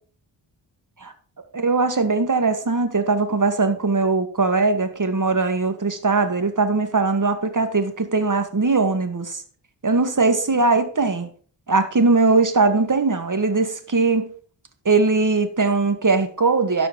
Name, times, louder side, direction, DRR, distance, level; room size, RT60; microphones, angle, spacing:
voice 1, 1.5-9.4 9.8-11.3 11.7-14.3 14.9-16.9, right 3 dB, 40° right, 8 dB, 2.2 m, -20 dB
12.5 x 5.1 x 6.2 m, 0.43 s
supercardioid pair, 40°, 49 cm